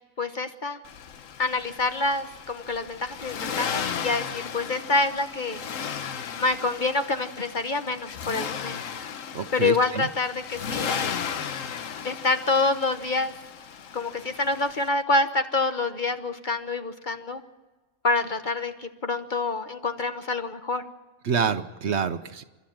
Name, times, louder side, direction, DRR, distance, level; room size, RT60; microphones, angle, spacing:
voice 1, 0.2-0.8 1.4-5.6 6.4-8.8 9.5-11.1 12.0-13.3 13.9-17.4 18.0-20.8, left 3 dB, 40° left, 8 dB, 1.2 m, -27 dB
Accelerating revving vroom, 0.8-14.9, left 7 dB, 80° left, 1.3 m, -35 dB
voice 2, 9.3-10.1 21.2-22.4, right 6 dB, 60° right, 10 dB, 1.1 m, -27 dB
29.0 x 12.5 x 8.7 m, 1.2 s
omnidirectional pair, 1.4 m